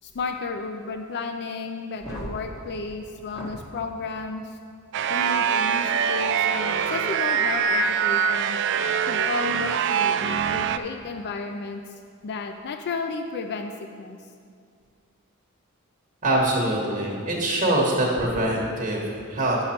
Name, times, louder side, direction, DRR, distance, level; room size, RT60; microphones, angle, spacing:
voice 1, 0.0-4.6 5.1-8.6 9.1-11.8 12.2-14.2, left 4 dB, 50° left, 6 dB, 0.4 m, -33 dB
sound 1, 1.9-3.7 5.1-5.2 6.8-6.9 8.8-8.9 10.3-10.5, equal, 15° left, 1.4 m, -39 dB
sound 2, 4.9-10.8, right 7 dB, 55° right, 0.3 m, -24 dB
voice 2, 16.2-19.6, right 1 dB, 35° right, -3 dB, 1.2 m, -24 dB
10.5 x 6.2 x 4.3 m, 2.2 s
head